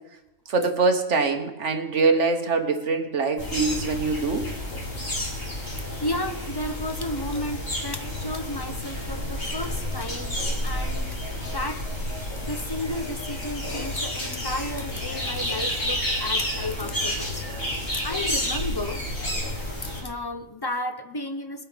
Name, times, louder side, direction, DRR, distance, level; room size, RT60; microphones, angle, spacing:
voice 1, 0.5-4.5, right 4 dB, 70° right, 5 dB, 1.6 m, -23 dB
sound 1, 3.4-20.0, left 1 dB, 50° left, 3.9 m, -30 dB
voice 2, 6.0-11.2 11.4-11.9 12.4-17.5 17.9-19.1 19.8-21.6, left 1 dB, 25° left, 8 dB, 0.7 m, -33 dB
20.5 x 8.5 x 5.1 m, 0.94 s
omnidirectional pair, 1.3 m